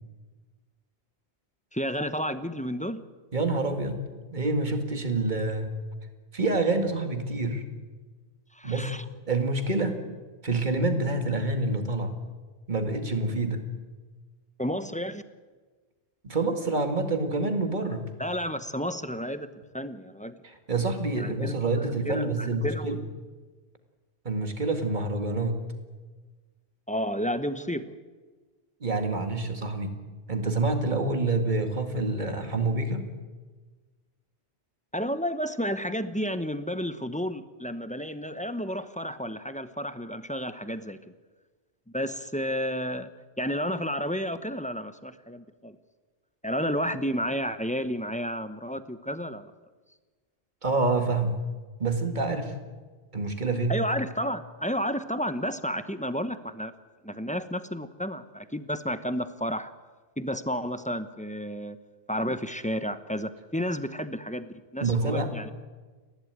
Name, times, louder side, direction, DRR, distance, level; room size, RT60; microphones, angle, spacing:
voice 1, 1.7-3.0 8.5-9.0 14.6-15.2 18.2-20.3 21.2-21.6 22.0-23.0 26.9-27.9 34.9-41.1 41.9-43.1 43.4-45.8 46.4-49.5 53.7-56.7 57.0-59.7 60.2-61.8 62.1-65.5, equal, 10° left, 11 dB, 0.8 m, -31 dB
voice 2, 3.3-4.0 4.3-5.7 6.3-7.6 8.6-8.9 9.3-10.1 10.4-12.2 12.7-13.7 16.2-18.1 20.4-23.0 24.2-25.6 28.8-30.0 30.3-33.1 50.6-51.4 51.8-52.6 53.1-53.8 64.8-65.4, right 2 dB, 45° right, 6 dB, 2.3 m, -27 dB
29.5 x 11.5 x 9.3 m, 1.4 s
omnidirectional pair, 1.1 m